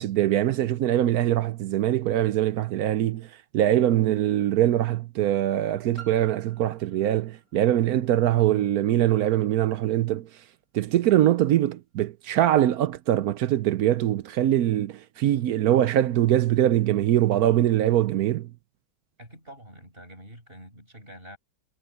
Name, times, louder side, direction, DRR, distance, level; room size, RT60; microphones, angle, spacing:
voice 1, 0.0-3.3 3.5-10.3 10.7-18.5, right 12 dB, 70° right, 1.0 m, -23 dB
Piano, 6.0-11.4 12.1-12.2, right 7 dB, 45° left, 3.2 m, -52 dB
voice 2, 19.2-21.4, equal, 35° right, 8.2 m, -46 dB
omnidirectional pair, 1.8 m